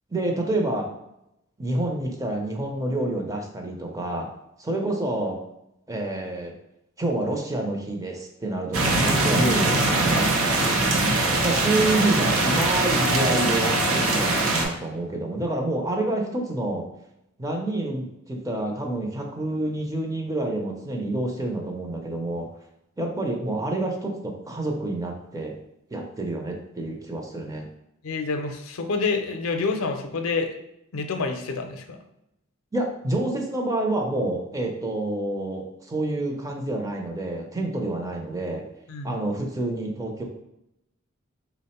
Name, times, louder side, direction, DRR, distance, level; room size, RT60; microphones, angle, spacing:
voice 1, 0.1-0.9 1.6-4.3 4.6-5.4 5.9-6.5 7.0-10.7 11.4-16.9 17.4-22.5 23.0-25.6 25.9-27.7 32.7-38.6 39.0-40.2, right 2 dB, 15° right, 1 dB, 0.5 m, -28 dB
sound 1, 8.7-14.7, right 2 dB, 90° right, 0.7 m, -22 dB
voice 2, 28.0-30.5 30.9-32.0 38.9-39.2, left 4 dB, 85° left, 5 dB, 0.5 m, -28 dB
3.4 x 2.0 x 4.1 m, 0.83 s
head